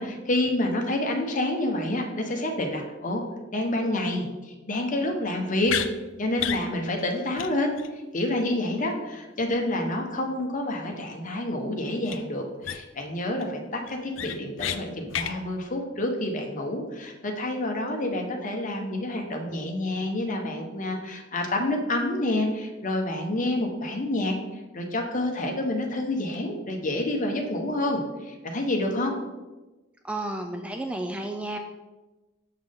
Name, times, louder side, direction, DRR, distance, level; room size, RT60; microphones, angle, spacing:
voice 1, 0.0-3.2 3.5-5.7 6.2-7.8 8.1-24.3 24.7-29.1, left 1 dB, 45° left, 2 dB, 1.0 m, -28 dB
sound 1, 5.7-5.9 6.4-6.6 7.0-7.1 7.4-7.5 7.8-7.9 12.1-12.2 12.6-13.0 13.4-13.5 13.9-14.8 15.1-15.3, left 9 dB, 85° left, 0.4 m, -30 dB
voice 2, 30.0-31.6, right 1 dB, 5° right, 4 dB, 0.3 m, -32 dB
6.5 x 5.9 x 3.6 m, 1.2 s
head